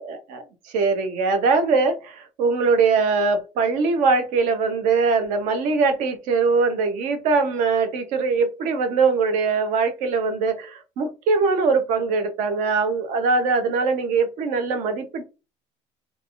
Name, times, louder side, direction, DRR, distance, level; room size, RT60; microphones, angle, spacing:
voice 1, 0.0-15.2, right 4 dB, 65° right, 0.8 m, -22 dB
3.3 x 2.5 x 2.5 m
cardioid pair, 155°, 14 cm